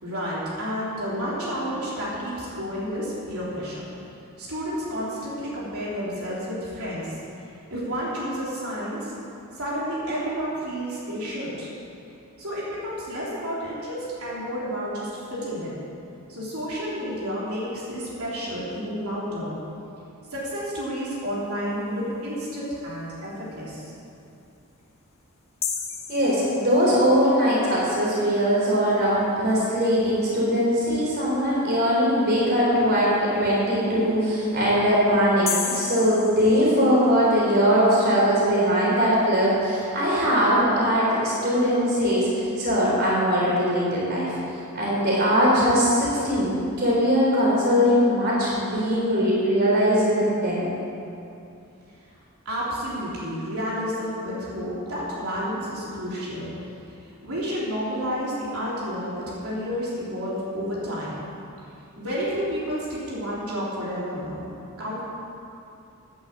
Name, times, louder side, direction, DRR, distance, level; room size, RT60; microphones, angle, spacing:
voice 1, 0.0-3.8 4.4-9.1 9.5-11.7 12.4-15.8 16.3-19.6 20.3-23.9 51.9-52.0 52.5-56.5 56.9-61.2 62.0-64.5 64.8-65.0, equal, 75° right, -7 dB, 3.6 m, -30 dB
sound 1, 25.6-27.1 35.5-37.2, left 6 dB, 30° left, 1.1 m, -32 dB
voice 2, 26.1-44.4 44.7-50.7, equal, 45° right, -5 dB, 3.8 m, -21 dB
11.0 x 9.9 x 7.5 m, 2.7 s
head